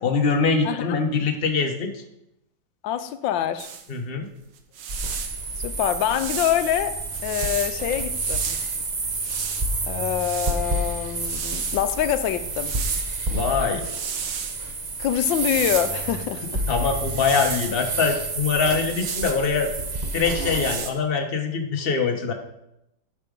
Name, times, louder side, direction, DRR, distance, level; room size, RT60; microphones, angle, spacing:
voice 1, 0.0-1.9 3.9-4.3 13.3-13.8 16.7-19.7 20.1-22.3, left 5 dB, 35° left, 3 dB, 1.2 m, -23 dB
voice 2, 2.8-3.7 5.6-7.0 7.2-8.6 9.9-12.8 15.0-16.7, left 11 dB, 85° left, 11 dB, 1.4 m, -25 dB
sound 1, 3.6-3.9 4.6-5.4 6.1-7.7 8.1-9.7 10.1-11.9 12.5-13.3 13.6-14.6 15.3-16.1 16.9-17.8 18.7-19.5 20.3-20.9, right 7 dB, 75° right, 1.6 m, -34 dB
sound 2, 4.9-20.8, right 2 dB, 35° right, 0.7 m, -29 dB
11.0 x 6.1 x 5.2 m, 0.84 s
omnidirectional pair, 2.0 m